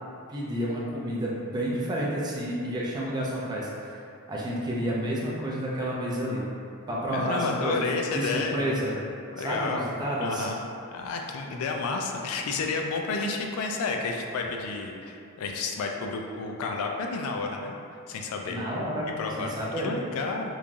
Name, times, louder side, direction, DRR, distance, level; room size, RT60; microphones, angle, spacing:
voice 1, 0.3-4.0 4.3-6.4 6.9-7.9 8.1-9.0 9.4-10.5 18.5-19.1 19.4-19.9, equal, 20° right, -5 dB, 0.4 m, -30 dB
voice 2, 7.1-8.7 9.3-9.9 10.2-10.6 10.9-17.8 18.1-18.6 19.2-20.5, left 4 dB, 75° left, 3 dB, 0.3 m, -31 dB
3.1 x 2.3 x 2.5 m, 2.5 s
head